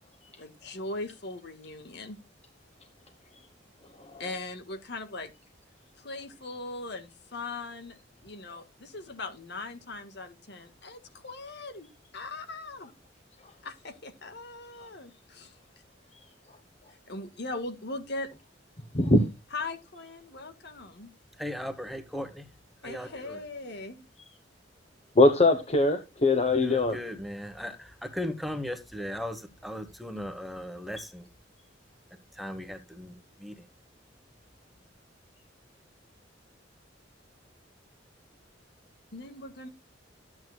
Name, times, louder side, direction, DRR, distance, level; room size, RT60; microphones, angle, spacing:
voice 1, 0.4-2.2 4.2-5.3 6.0-12.9 13.6-15.6 17.1-18.3 19.5-21.1 22.8-24.0 39.1-39.7, left 2 dB, 65° left, 1.6 m, -39 dB
voice 2, 18.9-19.3 25.1-27.0, left 2 dB, 35° left, 1.1 m, -22 dB
voice 3, 21.4-22.4 22.8-23.4 26.5-31.3 32.4-33.1 33.4-33.5, left 1 dB, ahead, 1.2 m, -37 dB
12.5 x 8.8 x 2.3 m
head